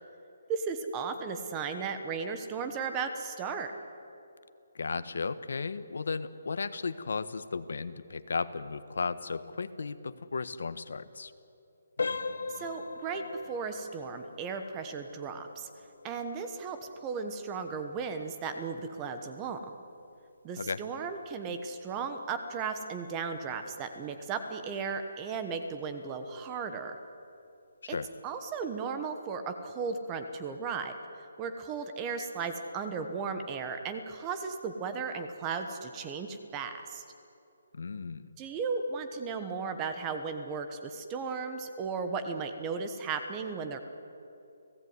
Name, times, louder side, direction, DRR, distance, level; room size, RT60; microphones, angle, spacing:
voice 1, 0.5-3.7 12.5-15.7 16.0-19.6 20.4-27.0 27.9-28.0 28.2-37.0 38.4-43.8, right 5 dB, 10° right, 7 dB, 1.1 m, -35 dB
voice 2, 4.7-11.3 20.6-20.8 27.8-28.1 37.7-38.2, left 4 dB, 65° left, 12 dB, 1.4 m, -35 dB
sound 1, 12.0-22.6 23.0-23.2 23.8-23.9 24.4-24.6, left 4 dB, 85° left, 1.9 m, -42 dB
30.0 x 17.5 x 9.6 m, 2.8 s
hypercardioid pair, 175°, 0 cm